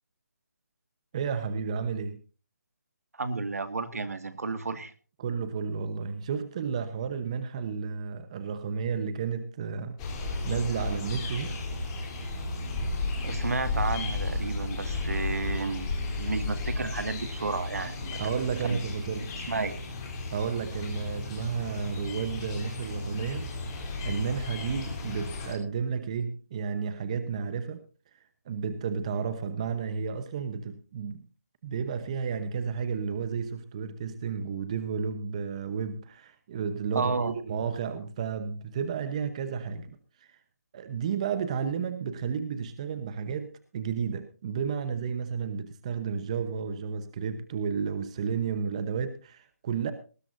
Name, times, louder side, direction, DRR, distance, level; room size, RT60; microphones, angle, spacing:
voice 1, 1.1-2.2 5.2-10.0 10.2-11.6 18.2-19.3 20.3-23.5 24.0-27.9 28.1-31.3 31.6-40.4 40.7-49.9, right 6 dB, 20° right, 11 dB, 0.9 m, -32 dB
voice 2, 3.1-4.9 13.2-15.9 16.2-18.2 18.7-18.8 19.5-19.7 36.9-37.4, right 4 dB, 65° right, 11 dB, 1.9 m, -32 dB
sound 1, 10.0-25.5, left 3 dB, 15° left, 3.4 m, -34 dB
19.5 x 15.5 x 2.6 m, 0.36 s
hypercardioid pair, 170°, 9 cm